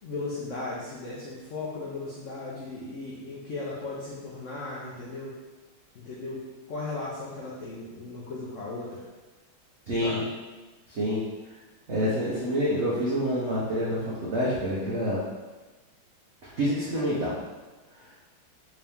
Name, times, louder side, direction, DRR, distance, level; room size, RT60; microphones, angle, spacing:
voice 1, 0.0-5.4 5.9-9.1 10.0-10.3, left 3 dB, 80° left, -6 dB, 0.6 m, -36 dB
voice 2, 9.9-10.2 10.9-11.2 11.9-15.2 16.6-17.3, equal, 80° right, -7 dB, 0.6 m, -27 dB
3.6 x 2.9 x 3.4 m, 1.2 s
omnidirectional pair, 2.2 m